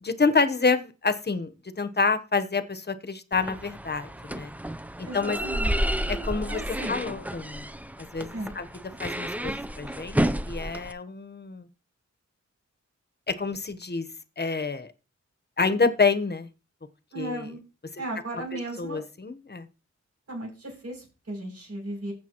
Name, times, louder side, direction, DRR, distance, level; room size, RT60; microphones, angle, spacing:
voice 1, 0.0-4.5 5.1-5.4 6.1-6.6 6.9-7.7 8.0-8.7 9.0-10.2 10.5-11.7 13.3-14.1 14.4-14.9 15.6-16.5 17.2-17.5 18.5-19.7, left 4 dB, 35° left, 1.0 m, -27 dB
sound 1, 3.3-10.9, equal, 5° right, 0.5 m, -31 dB
voice 2, 5.0-5.7 6.5-7.0 8.3-8.5 17.1-17.6 18.0-19.0 20.3-22.1, right 1 dB, 60° right, 6.8 m, -36 dB
15.0 x 7.0 x 3.0 m
wide cardioid pair, 105°, 29 cm